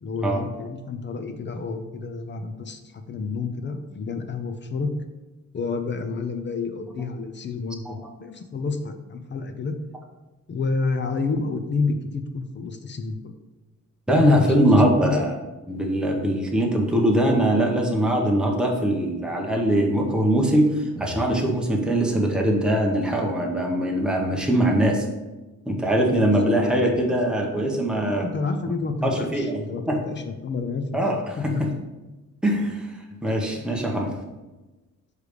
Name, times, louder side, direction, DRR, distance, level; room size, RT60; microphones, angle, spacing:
voice 1, 0.0-4.9 5.5-9.7 10.5-13.3 14.1-15.3 26.2-27.0 27.9-31.6, left 4 dB, 35° left, 7 dB, 0.5 m, -30 dB
voice 2, 14.1-15.4 15.7-25.1 25.7-28.2 29.0-29.6 29.9-30.0 30.9-31.5 32.4-32.9 33.2-34.1, right 1 dB, 5° right, 0 dB, 0.8 m, -22 dB
6.6 x 3.3 x 5.0 m, 1.1 s
wide cardioid pair, 155°, 32 cm